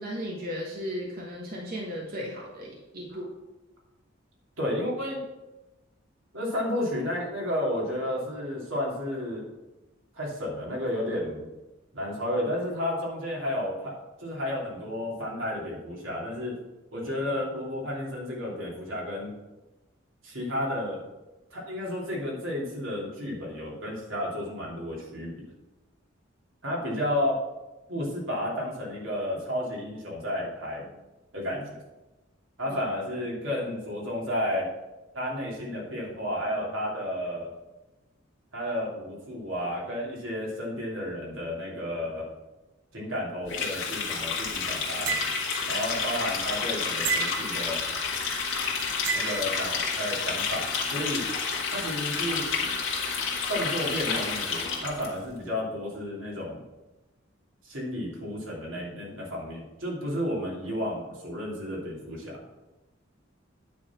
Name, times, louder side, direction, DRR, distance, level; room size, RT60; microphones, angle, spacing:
voice 1, 0.0-3.3, equal, 50° right, -3 dB, 1.3 m, -35 dB
voice 2, 4.6-5.2 6.3-9.5 10.1-11.5 11.9-16.6 16.9-19.3 20.2-21.0 21.5-25.5 26.6-27.4 27.9-30.9 31.3-31.8 32.6-34.7 35.1-37.5 38.5-42.3 42.9-45.2 45.6-47.8 49.1-51.2 51.7-52.4 53.5-56.6 57.6-62.4, left 1 dB, 90° right, -4 dB, 3.0 m, -32 dB
Water tap faucet, 43.5-55.1, left 5 dB, 70° left, 1.9 m, -30 dB
sound 1, 45.1-45.7 47.0-47.7 49.0-49.6, right 6 dB, 70° right, 0.8 m, -31 dB
9.6 x 4.2 x 6.0 m, 1.0 s
head